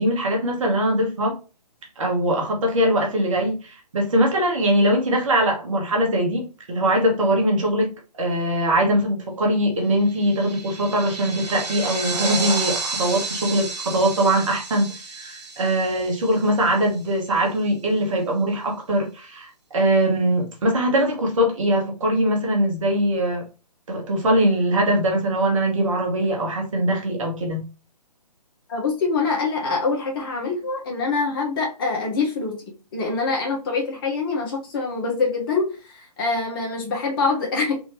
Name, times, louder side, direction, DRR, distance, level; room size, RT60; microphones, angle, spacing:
voice 1, 0.0-1.4 2.0-7.9 8.2-23.4 23.9-27.6, right 1 dB, 50° right, 1.4 m, -22 dB
sound 1, 10.0-16.8, right 3 dB, 70° right, 1.4 m, -31 dB
voice 2, 28.7-32.6 32.9-37.8, left 4 dB, 35° left, 1.3 m, -25 dB
3.6 x 2.8 x 3.0 m
figure-of-eight pair, 135°, 21 cm